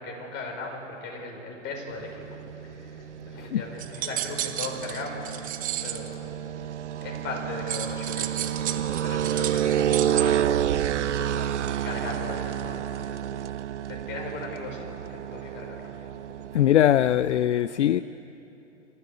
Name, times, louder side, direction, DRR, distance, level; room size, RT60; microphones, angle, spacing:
voice 1, 0.0-2.1 2.6-6.2 7.0-10.8 11.0-13.2 13.9-15.9, left 2 dB, 30° left, 1 dB, 5.2 m, -38 dB
sound 1, 1.9-17.5, right 10 dB, 70° right, 0.6 m, -30 dB
sound 2, 3.8-6.1 7.7-10.2, right 12 dB, 20° right, 1.1 m, -32 dB
voice 2, 16.5-18.0, left 11 dB, 65° left, 16 dB, 0.5 m, -21 dB
26.0 x 14.0 x 8.2 m, 2.9 s
figure-of-eight pair, 115°, 37 cm